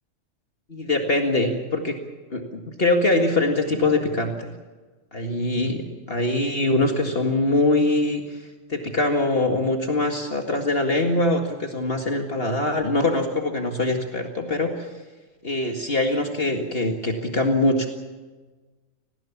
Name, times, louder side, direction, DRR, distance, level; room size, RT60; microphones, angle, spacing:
voice 1, 0.7-2.0 2.3-4.5 5.1-8.4 8.7-14.9 15.4-17.9, left 2 dB, 45° left, 4 dB, 2.2 m, -23 dB
27.5 x 19.5 x 7.3 m, 1.3 s
omnidirectional pair, 1.3 m